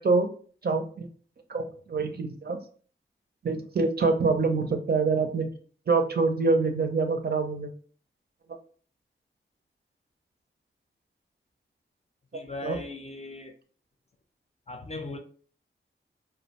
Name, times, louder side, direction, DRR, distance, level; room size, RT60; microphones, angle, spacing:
voice 1, 0.6-1.1 1.5-2.6 3.4-5.5 5.9-7.7 12.6-12.8, right 4 dB, 50° right, 0.5 m, -25 dB
voice 2, 12.3-13.5 14.7-15.2, left 2 dB, 30° left, 0.5 m, -38 dB
2.4 x 2.2 x 2.8 m
cardioid pair, 40°, 21 cm